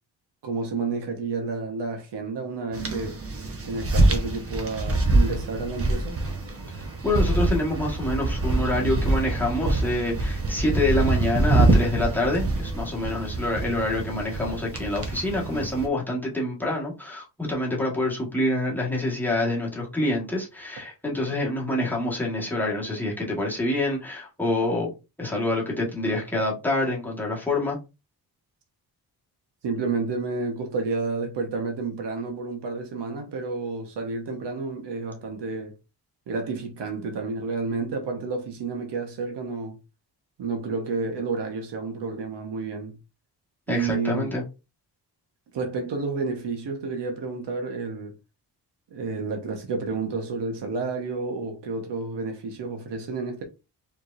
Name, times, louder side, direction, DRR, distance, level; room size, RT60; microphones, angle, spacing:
voice 1, 0.4-3.2 3.6-6.1 29.6-35.7 36.3-39.8 40.4-42.9 43.7-44.3 45.5-48.1 48.9-53.4, right 4 dB, 80° right, 1.3 m, -30 dB
sound 1, 2.7-15.9, right 2 dB, 35° right, 1.1 m, -25 dB
voice 2, 7.0-24.9 25.2-27.8 43.7-44.4, left 1 dB, 5° left, 1.6 m, -26 dB
4.6 x 3.6 x 2.6 m
wide cardioid pair, 135°, 41 cm